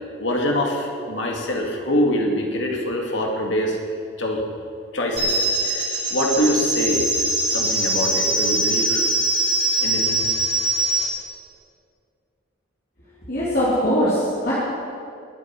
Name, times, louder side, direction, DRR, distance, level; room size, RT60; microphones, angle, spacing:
voice 1, 0.2-3.8 4.2-4.4 4.9-7.1 7.5-9.0 9.8-10.3, equal, 65° left, 0 dB, 2.2 m, -24 dB
sound 1, 5.2-11.1, right 1 dB, 25° right, 2.9 m, -22 dB
voice 2, 13.3-14.5, equal, 50° left, -9 dB, 3.0 m, -21 dB
20.0 x 7.8 x 6.0 m, 2.3 s
head